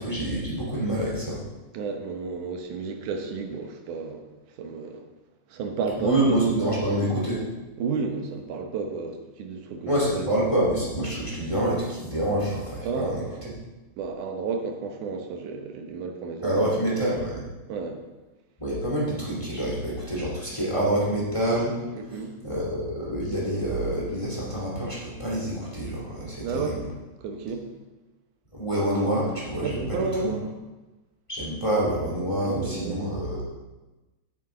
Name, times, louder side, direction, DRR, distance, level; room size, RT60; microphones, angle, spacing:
voice 1, 0.0-1.4 6.0-7.4 9.8-13.2 16.4-17.5 18.6-21.7 22.4-26.8 28.5-30.1 31.3-33.4, right 1 dB, 10° left, -5 dB, 2.2 m, -26 dB
voice 2, 1.7-4.3 4.6-5.1 5.5-6.5 7.8-10.3 12.8-13.5 14.0-16.8 17.7-18.0 21.9-22.3 26.4-26.8 27.2-27.7 29.6-30.5 32.4-33.1, right 4 dB, 70° right, 4 dB, 2.4 m, -32 dB
8.6 x 7.8 x 5.0 m, 1.1 s
omnidirectional pair, 3.8 m